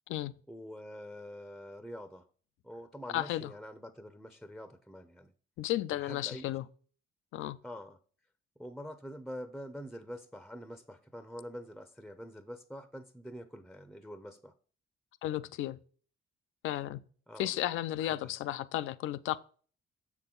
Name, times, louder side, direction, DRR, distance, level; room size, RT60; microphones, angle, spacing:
voice 1, 0.5-2.3 2.6-5.3 5.9-6.5 7.6-8.0 8.6-14.5 17.3-17.6 18.0-18.3, equal, ahead, 0.6 m, -46 dB
voice 2, 3.1-3.5 5.6-6.6 7.3-7.6 15.2-15.8 16.6-17.0 17.4-19.4, left 14 dB, 85° left, 0.5 m, -33 dB
6.9 x 6.0 x 3.8 m
cardioid pair, 90°, 20 cm